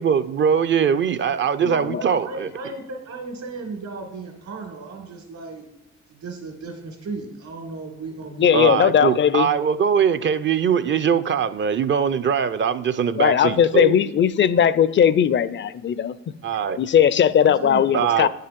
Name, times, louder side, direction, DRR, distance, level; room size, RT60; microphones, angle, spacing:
voice 1, 0.0-2.5 8.5-14.0 16.4-16.8 17.9-18.3, right 7 dB, 40° right, 0.5 m, -21 dB
voice 2, 1.7-5.7 6.1-9.2 17.4-17.9, right 3 dB, 65° right, 2.2 m, -35 dB
voice 3, 8.4-9.5 13.2-16.1 16.8-18.3, left 8 dB, 40° left, 0.4 m, -18 dB
9.2 x 5.6 x 5.2 m
cardioid pair, 90°, 30 cm